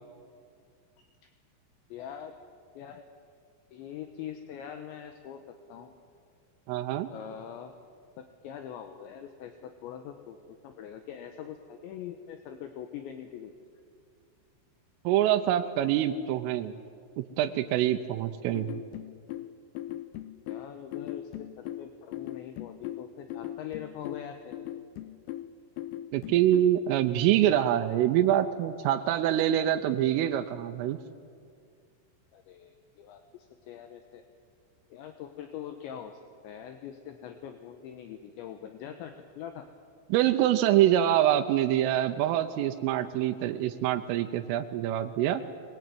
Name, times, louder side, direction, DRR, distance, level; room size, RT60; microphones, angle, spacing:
voice 1, 1.9-2.3 2.7-3.0 3.7-5.9 7.1-7.7 8.2-13.5 20.5-24.6 32.3-34.2 34.9-36.2 36.4-39.7, left 9 dB, 75° left, 7 dB, 3.1 m, -43 dB
voice 2, 6.7-7.1 15.0-16.7 17.2-18.8 26.1-31.0 40.1-45.4, right 12 dB, 85° right, 5 dB, 3.4 m, -25 dB
sound 1, 18.5-26.8, left 13 dB, 90° left, 3.4 m, -39 dB
23.0 x 20.5 x 9.3 m, 2.3 s
omnidirectional pair, 5.8 m